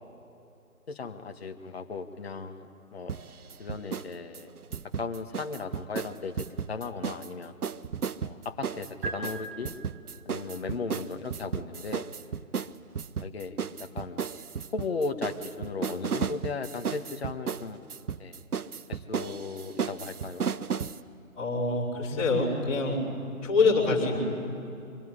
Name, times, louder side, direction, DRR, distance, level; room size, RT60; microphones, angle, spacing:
voice 1, 0.9-3.1 3.6-4.5 5.0-7.5 8.2-9.7 10.2-12.1 13.2-14.3 14.7-17.8 18.2-18.4 18.9-20.4, left 4 dB, 45° left, 6 dB, 1.6 m, -36 dB
sound 1, 3.1-4.1 4.3-7.3 7.6-21.0, right 6 dB, 80° right, 0.9 m, -34 dB
sound 2, 9.0-10.3, right 2 dB, 40° right, 6.3 m, -39 dB
voice 2, 21.4-23.0 23.4-24.2, left 3 dB, 25° left, -11 dB, 5.6 m, -25 dB
25.0 x 20.5 x 9.9 m, 2.8 s
figure-of-eight pair, 155°, 44 cm